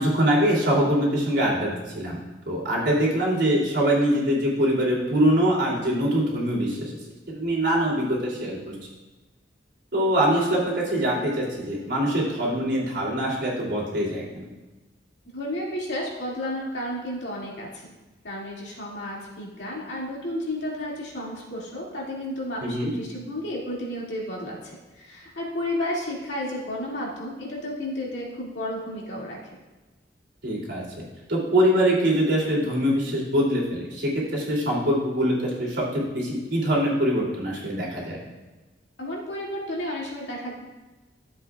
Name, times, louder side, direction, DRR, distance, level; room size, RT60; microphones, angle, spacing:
voice 1, 0.0-2.2 2.5-6.9 7.3-8.6 9.9-14.5 22.6-22.9 30.4-38.2, equal, 70° right, -4 dB, 3.0 m, -23 dB
voice 2, 15.3-17.9 18.2-24.6 25.0-29.4 39.0-40.5, left 1 dB, 70° left, -4 dB, 2.3 m, -32 dB
13.0 x 7.6 x 2.4 m, 1.2 s
head